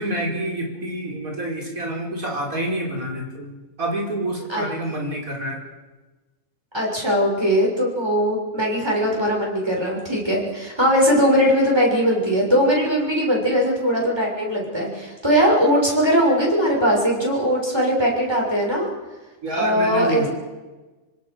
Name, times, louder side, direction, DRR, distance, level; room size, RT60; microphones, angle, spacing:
voice 1, 0.0-5.6 19.4-20.3, right 1 dB, 80° right, 0 dB, 5.2 m, -27 dB
voice 2, 6.7-18.9 19.6-20.3, equal, 20° right, -3 dB, 6.8 m, -20 dB
25.0 x 25.0 x 6.5 m, 1.2 s
omnidirectional pair, 1.4 m